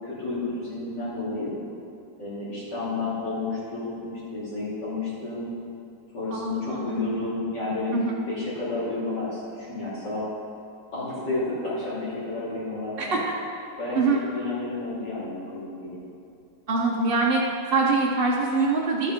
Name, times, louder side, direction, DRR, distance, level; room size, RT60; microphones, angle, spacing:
voice 1, 0.0-1.6 2.2-5.5 6.1-7.9 8.3-10.2 10.9-13.2 13.8-14.0 14.2-16.0, left 2 dB, 85° left, -11 dB, 3.8 m, -31 dB
voice 2, 6.3-7.0 7.9-8.1 13.0-13.3 13.9-14.2 16.7-17.4 17.7-19.1, right 3 dB, 40° right, -4 dB, 1.0 m, -24 dB
13.0 x 8.4 x 5.1 m, 2.5 s
omnidirectional pair, 1.8 m